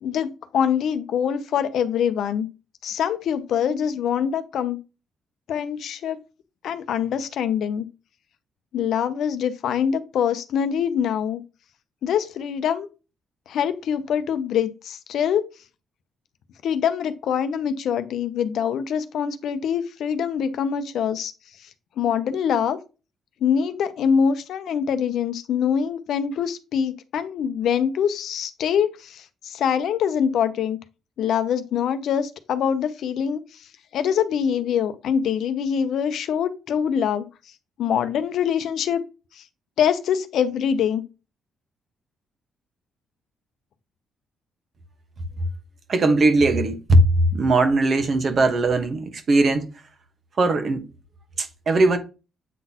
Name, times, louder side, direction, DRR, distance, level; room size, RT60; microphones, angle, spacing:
voice 1, 0.0-2.5 2.8-4.8 5.5-6.2 6.6-7.8 8.7-11.4 12.0-12.9 13.5-15.4 16.6-21.3 22.0-22.8 23.4-30.8 31.2-33.4 33.9-37.2 37.8-39.0 39.8-41.0, left 8 dB, 70° left, 0.7 m, -24 dB
voice 2, 45.9-49.7 50.4-50.9 51.4-52.0, right 2 dB, 45° right, 1.2 m, -19 dB
8.2 x 3.9 x 2.9 m
cardioid pair, 90°, 0 cm